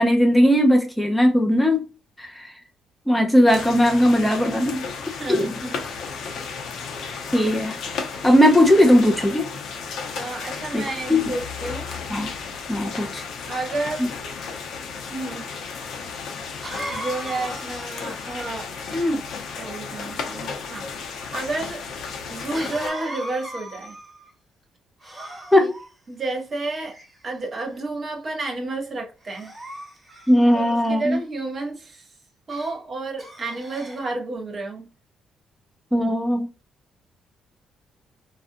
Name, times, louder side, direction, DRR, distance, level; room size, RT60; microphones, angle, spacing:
voice 1, 0.0-1.8 2.2-2.5 3.1-4.9 5.3-5.5 7.3-7.8 8.2-9.5 10.7-10.8 11.1-11.2 12.1-12.3 12.7-13.2 25.5-25.8 30.3-31.2 35.9-36.5, equal, 5° left, 0.5 m, -18 dB
sound 1, 3.5-22.9, left 5 dB, 75° left, 0.6 m, -34 dB
voice 2, 5.1-6.1 7.0-7.3 10.2-11.9 13.4-14.1 15.1-15.4 16.9-19.3 19.6-21.8 22.3-23.9 25.6-25.7 26.1-27.0 27.2-29.5 30.5-32.1 32.5-34.9, right 2 dB, 40° right, 0.9 m, -31 dB
Cough, 15.5-15.6 16.6-19.0 22.5-24.3 25.0-25.9 26.7-27.3 27.9-28.2 29.2-30.9 32.5-32.7 33.2-34.1, right 1 dB, 15° right, 1.2 m, -38 dB
2.4 x 2.2 x 2.6 m
cardioid pair, 90°, 0 cm